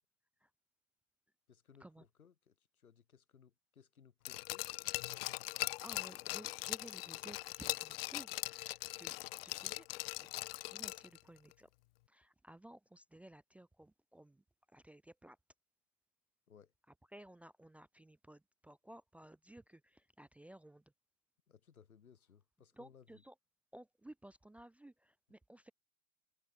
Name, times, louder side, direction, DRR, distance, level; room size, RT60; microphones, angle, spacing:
voice 1, 1.5-4.7 16.5-16.7 21.5-23.2, left 7 dB, 90° left, 5.2 m, -63 dB
Glass, 4.2-11.2 11.5-11.6, left 20 dB, 45° left, 0.6 m, -41 dB
voice 2, 5.8-9.2 9.4-9.9 10.2-10.3 10.7-11.7 12.1-14.4 14.7-15.4 17.1-20.8 22.8-23.3 23.7-25.7, right 1 dB, 5° right, 0.7 m, -56 dB
hypercardioid pair, 125°, 42 cm